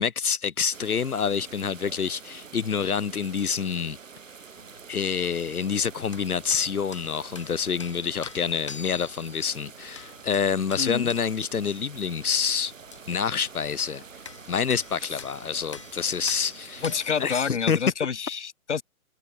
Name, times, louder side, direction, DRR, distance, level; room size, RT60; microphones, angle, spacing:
voice 1, 0.0-4.0 4.9-12.7 13.1-14.0 14.5-16.8 17.2-17.8, left 6 dB, 85° left, 1.7 m, -27 dB
sound 1, 0.7-17.5, right 6 dB, 60° right, 2.8 m, -47 dB
sound 2, 4.5-17.1, left 6 dB, 20° left, 1.2 m, -47 dB
voice 2, 10.8-11.1 15.0-15.2 16.8-18.8, left 6 dB, 50° left, 2.0 m, -28 dB
hypercardioid pair, 180°, 43 cm